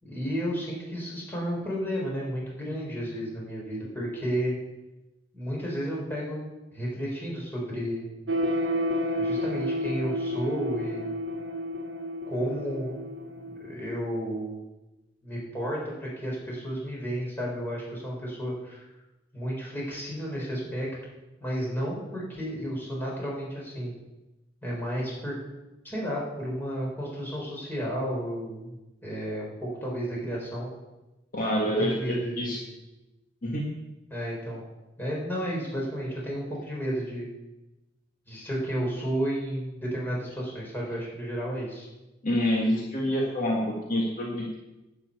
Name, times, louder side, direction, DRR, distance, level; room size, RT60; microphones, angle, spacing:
voice 1, 0.0-4.5 5.3-6.4 6.7-8.0 9.2-11.1 12.3-13.0 13.5-14.6 15.2-18.8 19.3-20.9 21.4-23.9 24.6-25.3 25.8-28.8 29.0-30.7 31.8-32.7 34.1-34.6 35.0-37.3 38.3-41.9, equal, 10° left, -4 dB, 4.0 m, -32 dB
sound 1, 8.3-14.1, equal, 70° right, 0.9 m, -31 dB
voice 2, 31.3-32.6 33.4-33.7 42.2-44.6, equal, 45° left, -2 dB, 1.8 m, -27 dB
11.0 x 6.0 x 8.2 m, 1.0 s
head